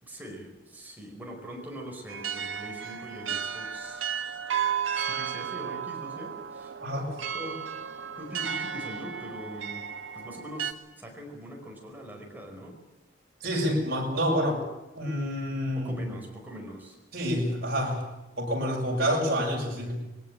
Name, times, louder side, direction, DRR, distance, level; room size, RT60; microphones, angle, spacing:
voice 1, 0.0-4.0 4.4-6.8 7.3-7.6 8.2-9.8 10.1-12.8 15.7-17.0, equal, 10° right, 0 dB, 5.1 m, -42 dB
sound 1, 2.1-10.7, right 8 dB, 90° right, 1.4 m, -34 dB
voice 2, 13.4-14.6 14.9-15.9 17.1-18.1 18.4-20.0, equal, 55° right, 0 dB, 7.1 m, -28 dB
22.0 x 18.5 x 8.9 m, 1.0 s
head